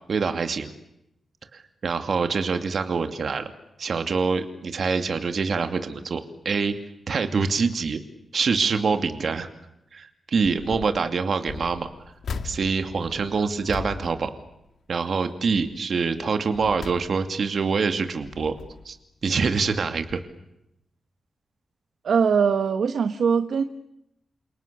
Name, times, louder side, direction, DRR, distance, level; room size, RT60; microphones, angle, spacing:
voice 1, 0.1-0.7 1.5-3.5 3.8-6.8 7.1-8.0 8.3-9.5 9.9-11.9 12.4-14.3 14.9-18.5 18.8-19.0 19.2-20.2, right 5 dB, 55° right, 8 dB, 2.6 m, -25 dB
sound 1, 10.4-11.0 11.4-15.1 15.5-15.8 16.3-17.6 18.1-19.0 19.7-19.8 20.1-20.2, left 5 dB, 70° left, 2.1 m, -39 dB
voice 2, 22.0-23.6, right 6 dB, 75° right, 9 dB, 1.3 m, -21 dB
29.0 x 28.5 x 6.9 m, 0.84 s
wide cardioid pair, 135°, 0 cm